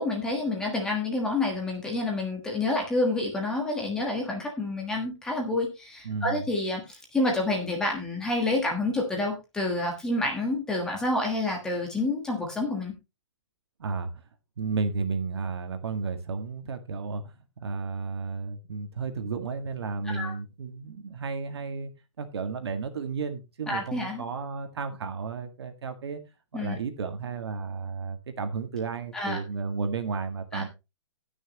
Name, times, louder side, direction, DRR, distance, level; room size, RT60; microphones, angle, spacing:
voice 1, 0.0-12.9 20.0-20.3 23.7-24.2 26.5-26.8 29.1-29.4 30.5-30.6, left 2 dB, 5° left, 0 dB, 1.4 m, -28 dB
voice 2, 6.0-6.5 13.8-14.1 14.6-17.2 17.6-21.9 22.2-26.2 26.5-30.7, right 4 dB, 55° right, 7 dB, 1.9 m, -33 dB
19.0 x 6.4 x 3.0 m, 0.26 s
hypercardioid pair, 175°, 16 cm